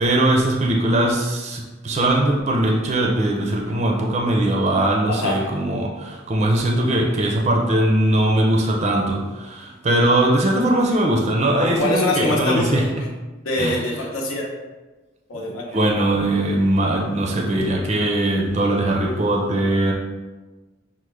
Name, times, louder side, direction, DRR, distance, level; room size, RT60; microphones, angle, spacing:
voice 1, 0.0-13.0 13.6-13.8 15.7-19.9, right 1 dB, 30° right, 0 dB, 0.4 m, -20 dB
voice 2, 5.1-5.5 11.6-13.1 13.4-14.5 15.3-15.8, left 1 dB, 85° left, -2 dB, 0.8 m, -24 dB
6.1 x 2.1 x 3.2 m, 1.2 s
head